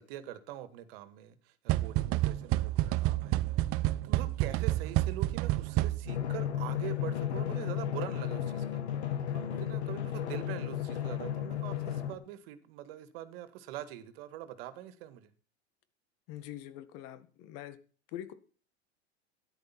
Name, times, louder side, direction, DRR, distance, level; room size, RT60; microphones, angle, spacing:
voice 1, 0.0-3.4 4.0-8.8 9.3-15.3, right 12 dB, 60° right, 2.0 m, -44 dB
sound 1, 1.7-6.3, right 16 dB, 45° right, 0.9 m, -29 dB
Drum, 6.1-12.1, left 10 dB, 80° left, 2.4 m, -34 dB
voice 2, 16.3-17.8 18.1-18.3, left 12 dB, 55° left, 1.9 m, -44 dB
13.0 x 10.5 x 5.9 m
hypercardioid pair, 95°, 33 cm